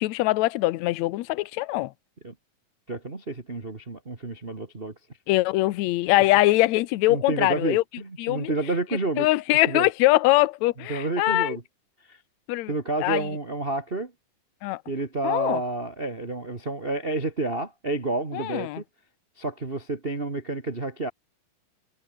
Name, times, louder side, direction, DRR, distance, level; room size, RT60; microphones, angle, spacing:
voice 1, 0.0-1.9 5.3-7.8 8.2-8.5 9.2-11.6 12.5-12.7 13.0-13.3 14.6-14.8 15.2-15.6 18.3-18.8, left 18 dB, 75° left, 1.8 m, -22 dB
voice 2, 2.9-4.9 7.1-9.3 9.7-9.9 10.9-11.6 12.1-12.2 12.7-14.1 14.9-18.8 19.4-21.1, right 2 dB, 20° right, 1.8 m, -30 dB
omnidirectional pair, 3.9 m